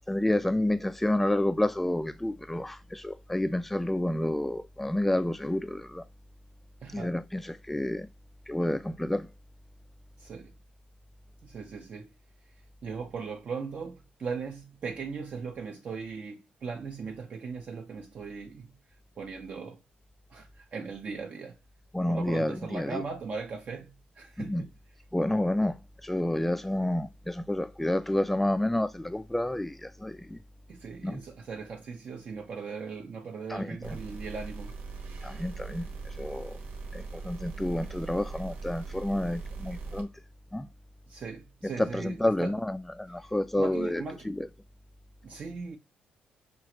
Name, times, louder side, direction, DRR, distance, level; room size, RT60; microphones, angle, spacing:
voice 1, 0.1-6.0 6.9-8.1 8.5-9.3 21.9-23.0 24.4-24.7 25.1-30.4 31.0-31.2 33.5-34.0 35.2-35.9 36.2-36.6 36.9-40.1 40.5-40.7 41.6-44.5, left 1 dB, 5° left, 0.4 m, -29 dB
voice 2, 6.8-7.2 10.2-10.5 11.4-12.1 12.8-18.7 19.2-19.8 20.3-21.6 22.1-24.7 30.7-34.8 41.1-42.5 43.2-43.3 43.6-44.3 45.2-45.8, right 5 dB, 45° right, 0.7 m, -39 dB
sound 1, 33.8-40.0, right 4 dB, 80° right, 1.1 m, -41 dB
6.1 x 2.5 x 2.9 m
cardioid pair, 120°, 3 cm